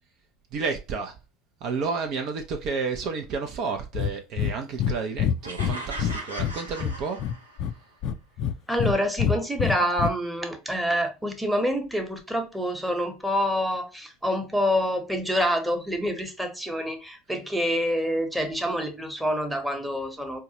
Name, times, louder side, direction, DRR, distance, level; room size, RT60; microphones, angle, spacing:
voice 1, 0.5-1.2 1.6-7.2, right 5 dB, 50° right, 0.6 m, -31 dB
Breathing, 3.9-4.1 4.4-4.5 4.8-4.9 5.2-6.5 6.8-7.7 8.0-8.9 9.2-10.1, left 9 dB, 50° left, 0.3 m, -25 dB
sound 1, 5.4-7.8, right 1 dB, 90° right, 0.8 m, -38 dB
voice 2, 8.7-20.4, equal, 5° right, 1.0 m, -27 dB
4.6 x 2.2 x 2.8 m
figure-of-eight pair, 75°, 0 cm